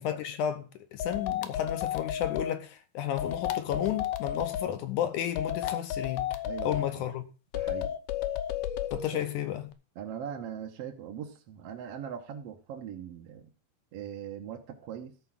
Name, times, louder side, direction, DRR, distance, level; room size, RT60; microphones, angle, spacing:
voice 1, 0.0-7.3 8.9-9.7, left 10 dB, 75° left, 2.0 m, -32 dB
sound 1, 1.0-2.6 3.2-4.7 5.4-6.9 7.5-9.1, left 10 dB, 90° left, 2.8 m, -32 dB
voice 2, 6.4-7.1 7.5-7.9 9.9-13.5 13.9-15.1, right 8 dB, 60° right, 1.7 m, -40 dB
13.0 x 4.7 x 7.5 m
omnidirectional pair, 4.2 m